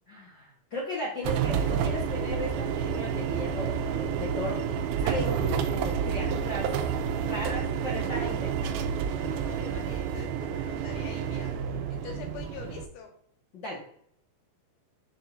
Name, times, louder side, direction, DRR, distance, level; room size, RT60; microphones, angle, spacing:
voice 1, 0.1-4.6 5.0-6.7 7.2-8.8 13.5-13.8, left 1 dB, 65° left, -4 dB, 1.1 m, -36 dB
sound 1, 1.2-12.9, right 7 dB, 80° right, 2.4 m, -29 dB
voice 2, 9.1-13.1, left 6 dB, 85° left, 2 dB, 3.4 m, -45 dB
7.1 x 6.7 x 2.7 m, 0.65 s
omnidirectional pair, 4.3 m